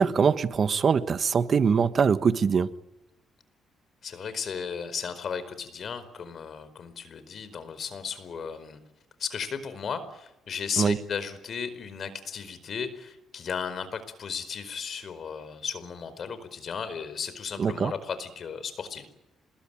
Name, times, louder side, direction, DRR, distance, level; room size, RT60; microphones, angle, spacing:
voice 1, 0.0-2.7 10.8-11.0 17.6-17.9, right 6 dB, 45° right, 1.3 m, -23 dB
voice 2, 4.0-8.8 9.2-19.1, left 6 dB, 55° left, 4.7 m, -35 dB
26.5 x 21.5 x 9.0 m
cardioid pair, 90°, 0 cm